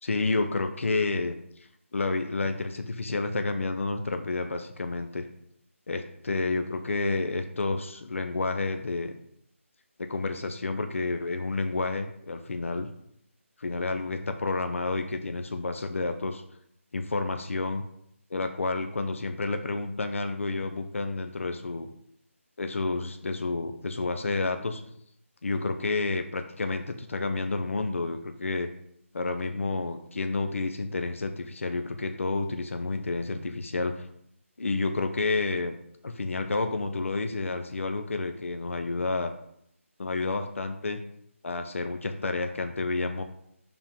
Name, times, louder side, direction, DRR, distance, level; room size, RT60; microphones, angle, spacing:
voice 1, 0.0-5.2 5.9-9.1 10.0-12.9 13.6-16.4 16.9-17.8 18.3-21.9 22.6-24.8 25.4-28.7 29.1-34.1 34.6-35.7 36.0-39.3 40.0-41.0 41.4-43.2, left 3 dB, 65° left, 6 dB, 0.7 m, -30 dB
6.9 x 3.7 x 5.6 m, 0.73 s
figure-of-eight pair, 175°, 8 cm